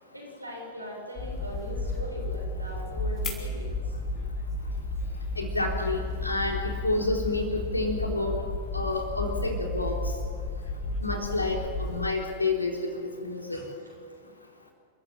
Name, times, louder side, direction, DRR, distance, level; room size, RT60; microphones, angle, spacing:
voice 1, 0.1-4.2 13.5-13.7, equal, 85° right, -2 dB, 7.5 m, -40 dB
sound 1, 1.2-12.1, left 2 dB, 30° left, 4.5 m, -33 dB
voice 2, 5.4-8.4 8.7-9.9 11.0-12.8 13.2-13.6, left 2 dB, 85° left, 2 dB, 3.7 m, -29 dB
29.0 x 14.0 x 8.9 m, 2.1 s
figure-of-eight pair, 90°, 0 cm